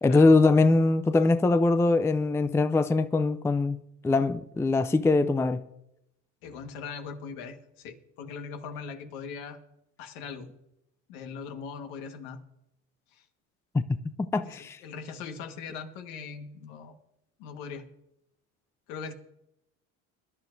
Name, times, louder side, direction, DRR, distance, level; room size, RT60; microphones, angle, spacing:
voice 1, 0.0-5.6 13.7-13.8 14.2-14.8, left 3 dB, 5° left, 0.4 m, -22 dB
voice 2, 6.4-9.6 10.0-10.5 11.1-12.4 13.1-13.2 14.3-17.0 17.4-17.9 18.9-19.1, left 5 dB, 75° left, 1.7 m, -40 dB
22.0 x 11.0 x 2.7 m
hypercardioid pair, 80°, 38 cm